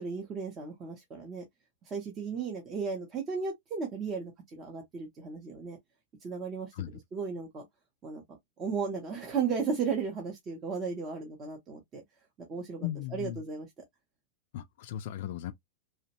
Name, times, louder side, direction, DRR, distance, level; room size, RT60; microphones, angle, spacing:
voice 1, 0.0-1.4 1.9-5.8 6.2-7.6 8.0-8.2 8.6-12.0 12.5-13.7, right 5 dB, 20° right, 0.6 m, -35 dB
voice 2, 12.8-13.4 14.5-15.5, left 12 dB, 50° left, 0.3 m, -37 dB
2.9 x 2.0 x 2.8 m
supercardioid pair, 175°, 0 cm